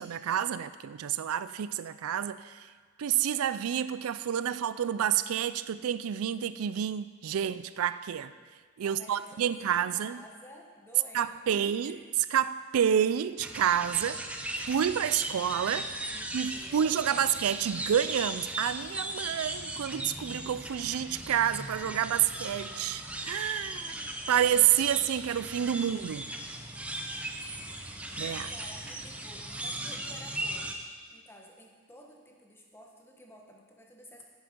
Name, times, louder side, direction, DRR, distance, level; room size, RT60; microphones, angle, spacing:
voice 1, 0.0-2.7 3.0-8.3 8.8-10.2 11.1-12.0 12.3-14.2 14.7-15.9 16.3-26.2 28.2-28.5, right 9 dB, 85° right, 0.4 m, -29 dB
voice 2, 8.8-12.1 16.1-16.8 17.2-17.4 24.5-25.9 28.5-30.8 31.1-34.2, equal, 10° left, 1.4 m, -53 dB
sound 1, 13.4-30.7, right 1 dB, 5° right, 0.6 m, -38 dB
10.5 x 9.7 x 5.2 m
head